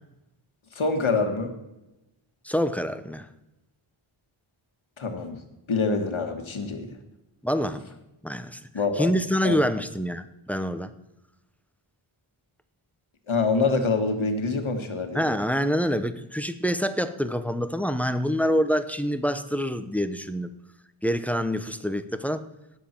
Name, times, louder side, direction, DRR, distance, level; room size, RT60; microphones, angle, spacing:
voice 1, 0.7-1.5 5.0-5.4 5.7-6.9 8.7-9.2 9.4-9.6 13.3-15.3, left 4 dB, 70° left, 5 dB, 1.7 m, -25 dB
voice 2, 2.4-3.3 7.4-7.9 8.2-8.6 9.0-10.9 15.1-20.5 21.0-22.5, equal, 5° left, 11 dB, 0.7 m, -26 dB
17.5 x 7.4 x 4.4 m, 0.97 s
wide cardioid pair, 75°, 50 cm